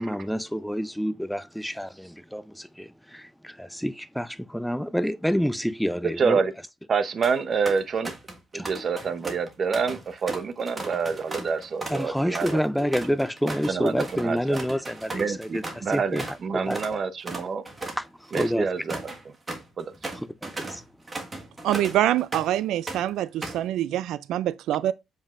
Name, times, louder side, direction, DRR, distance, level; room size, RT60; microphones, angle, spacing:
voice 1, 0.0-6.4 8.5-8.7 11.9-16.3 16.7-17.0 18.0-18.7 20.1-20.8, equal, ahead, 0.4 m, -28 dB
voice 2, 6.2-6.5 6.9-8.2 8.5-12.6 13.7-14.6 15.1-17.6 18.3-19.0 19.8-20.1, right 5 dB, 40° right, 0.8 m, -27 dB
sound 1, 7.0-7.4 7.7-8.4 8.6-16.4 16.7-16.9 17.2-22.6 22.9-23.7, right 2 dB, 20° right, 1.6 m, -37 dB
voice 3, 21.6-24.9, right 12 dB, 75° right, 0.3 m, -25 dB
7.3 x 5.2 x 2.5 m
cardioid pair, 125°, 0 cm